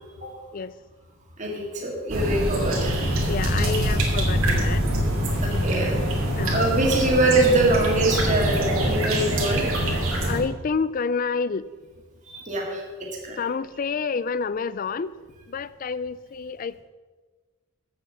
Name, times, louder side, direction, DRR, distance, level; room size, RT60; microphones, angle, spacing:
voice 1, 1.4-3.1 5.4-9.6 12.3-13.4, right 2 dB, 35° right, -2 dB, 1.9 m, -24 dB
sound 1, 2.1-10.4, right 1 dB, 70° right, 2.6 m, -24 dB
voice 2, 3.3-4.8 6.4-6.7 10.2-11.7 13.4-15.1 15.5-16.8, left 5 dB, 40° left, 17 dB, 0.3 m, -28 dB
8.1 x 7.9 x 7.3 m, 1.3 s
head